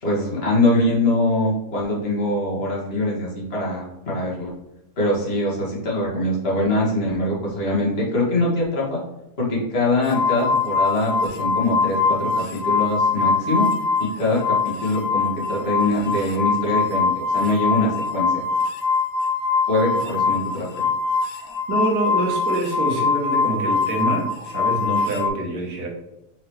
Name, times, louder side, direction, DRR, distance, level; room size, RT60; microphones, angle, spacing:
voice 1, 0.0-4.5 5.0-9.0 9.4-13.7 14.0-18.4 19.7-20.9, left 1 dB, 40° left, -4 dB, 1.6 m, -23 dB
sound 1, 10.1-14.1 14.4-25.3, left 4 dB, 85° left, 1.2 m, -23 dB
voice 2, 21.7-25.9, right 2 dB, 70° right, 0 dB, 1.5 m, -25 dB
4.4 x 3.8 x 3.1 m, 0.93 s
omnidirectional pair, 1.7 m